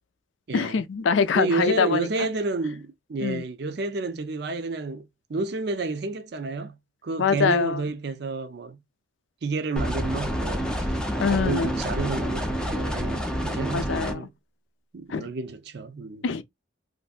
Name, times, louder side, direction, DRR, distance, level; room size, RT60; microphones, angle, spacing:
voice 1, 0.5-2.3 3.2-3.5 7.2-7.8 11.2-11.7 13.7-14.3 15.1-15.3 16.2-16.4, left 5 dB, 75° left, 0.4 m, -24 dB
voice 2, 1.3-6.7 7.0-8.8 9.4-11.0 11.3-14.3 14.9-16.2, right 3 dB, 55° right, 0.5 m, -30 dB
sound 1, 9.8-14.1, equal, 5° left, 0.4 m, -28 dB
3.2 x 2.6 x 2.3 m
head